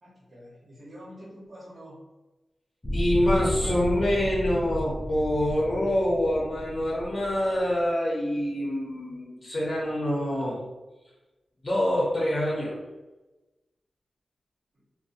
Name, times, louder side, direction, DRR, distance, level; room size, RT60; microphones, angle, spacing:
voice 1, 0.0-2.0 3.2-3.9, equal, 65° right, -7 dB, 0.8 m, -45 dB
sound 1, 2.8-7.7, equal, 20° left, 0.4 m, -33 dB
voice 2, 2.9-10.6 11.6-12.8, left 1 dB, 55° left, -6 dB, 0.7 m, -26 dB
2.6 x 2.0 x 2.5 m, 1.1 s
cardioid pair, 60°, 0 cm